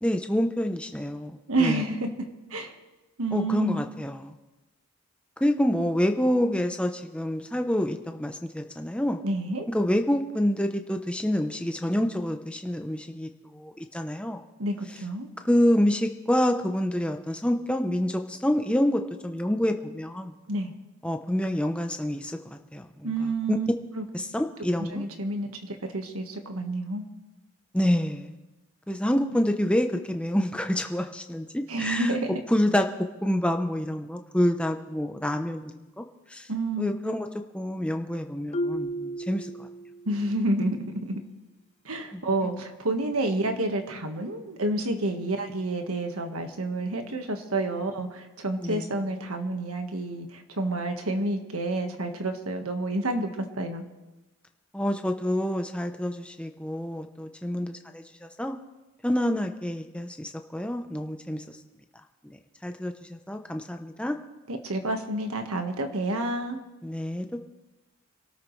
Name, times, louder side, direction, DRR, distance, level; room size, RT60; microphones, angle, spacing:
voice 1, 0.0-1.3 1.6-1.8 3.3-4.3 5.4-9.2 9.7-14.4 15.4-20.3 21.0-23.1 23.5-23.6 24.1-25.0 27.7-28.3 28.9-32.1 32.5-36.0 36.3-36.5 36.8-37.3 37.5-39.7 42.4-42.5 48.6-48.9 54.7-58.6 59.0-61.4 62.6-64.2 66.8-67.4, equal, 5° left, 5 dB, 0.8 m, -27 dB
voice 2, 1.5-2.7 3.2-3.8 9.2-9.7 14.6-15.3 20.5-20.7 23.0-23.7 24.0-24.1 24.8-27.0 29.1-29.4 31.7-32.4 36.5-36.9 40.0-41.2 41.8-53.3 53.6-53.8 64.5-66.6, right 2 dB, 85° right, 5 dB, 1.6 m, -29 dB
Marimba xylophone, 38.5-40.3, equal, 30° left, 0.4 m, -33 dB
26.5 x 13.0 x 3.3 m, 1.1 s
head